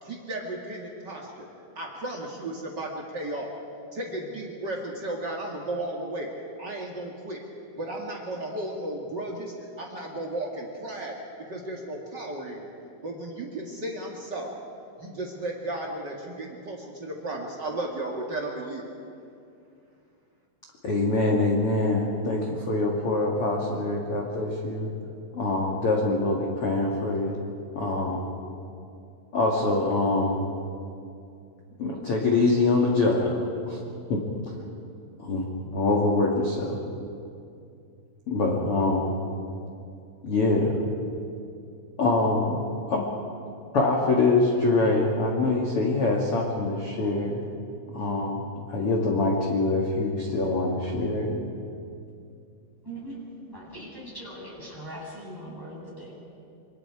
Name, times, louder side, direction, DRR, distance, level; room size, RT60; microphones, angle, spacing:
voice 1, 0.0-1.5 1.7-3.5 3.9-6.3 6.6-7.4 7.7-11.1 11.5-12.7 13.0-14.6 15.0-18.8, right 1 dB, 80° right, -2 dB, 0.9 m, -34 dB
voice 2, 20.8-24.9 25.3-27.4 27.8-28.3 29.3-30.4 31.8-33.8 34.1-34.2 35.2-36.8 38.3-39.1 40.2-40.8 42.0-43.0 43.7-47.4 47.9-51.4, left 2 dB, 50° left, -1 dB, 1.8 m, -24 dB
voice 3, 52.8-53.2 53.5-56.1, right 1 dB, 5° right, -5 dB, 6.8 m, -40 dB
27.0 x 26.0 x 4.8 m, 2.5 s
omnidirectional pair, 5.4 m